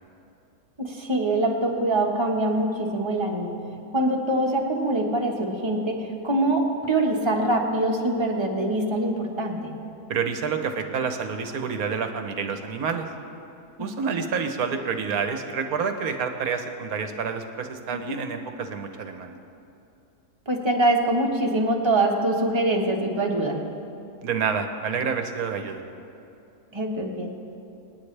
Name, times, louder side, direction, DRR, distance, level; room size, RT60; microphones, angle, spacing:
voice 1, 0.8-3.5 3.9-9.7 13.8-14.3 17.9-18.1 20.5-23.6 26.7-27.3, right 1 dB, 20° right, -1 dB, 1.3 m, -24 dB
voice 2, 10.1-13.1 13.8-19.4 24.2-25.8, right 6 dB, 65° right, 6 dB, 1.3 m, -28 dB
25.5 x 9.7 x 3.3 m, 2.8 s
omnidirectional pair, 1.8 m